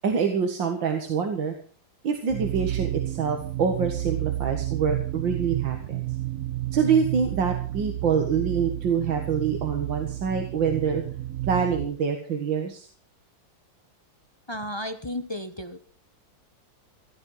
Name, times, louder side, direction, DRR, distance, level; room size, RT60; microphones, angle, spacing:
voice 1, 0.0-1.5 2.0-6.0 6.7-11.0 11.4-12.9, right 6 dB, 80° right, 4 dB, 2.4 m, -26 dB
sound 1, 2.3-11.9, right 15 dB, 55° right, 1.3 m, -31 dB
voice 2, 14.5-15.8, left 1 dB, 20° left, 10 dB, 0.7 m, -33 dB
16.5 x 12.5 x 5.7 m, 0.42 s
omnidirectional pair, 2.0 m